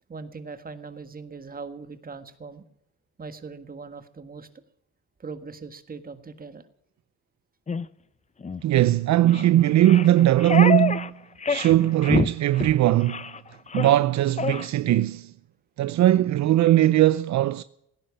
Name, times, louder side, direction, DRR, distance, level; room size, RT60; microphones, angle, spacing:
voice 1, 0.1-2.6 3.2-4.5 5.2-6.7, right 4 dB, 30° right, 1.7 m, -40 dB
sound 1, 7.7-7.8 8.4-8.6 9.3-9.5 9.8-11.1 11.4-11.8 12.0-12.3 12.5-12.7 13.1-13.4 13.7-14.0 14.4-14.7, left 5 dB, 25° left, 0.7 m, -26 dB
voice 2, 8.6-11.1 11.5-13.2 13.7-15.3 15.8-17.6, right 13 dB, 65° right, 0.6 m, -19 dB
17.0 x 10.5 x 7.2 m
cardioid pair, 90°, 30 cm